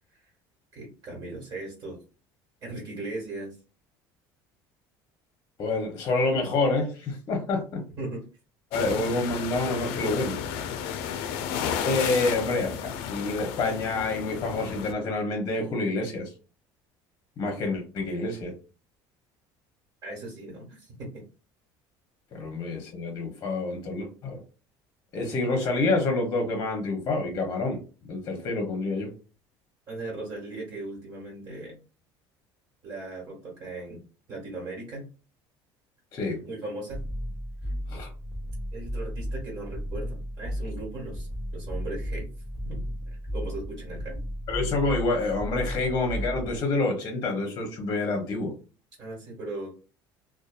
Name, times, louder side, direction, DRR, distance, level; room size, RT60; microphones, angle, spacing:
voice 1, 0.7-2.0 2.6-3.5 8.0-8.2 20.0-21.2 29.9-31.8 32.8-34.0 34.3-35.0 36.4-37.0 37.6-37.7 38.7-42.3 42.6-42.8 43.3-44.2 49.0-49.7, right 2 dB, 40° right, -3 dB, 1.5 m, -38 dB
voice 2, 5.6-7.8 8.7-10.4 11.8-16.3 17.4-18.6 22.3-24.4 25.1-27.8 28.1-29.1 36.1-36.4 37.9-38.1 44.5-48.5, left 2 dB, 40° left, 2 dB, 0.8 m, -28 dB
sound 1, 8.7-14.9, left 8 dB, 80° left, 0.4 m, -32 dB
sound 2, 36.9-46.6, equal, 10° right, 1.3 m, -34 dB
2.7 x 2.3 x 2.3 m, 0.34 s
cardioid pair, 130°, 9 cm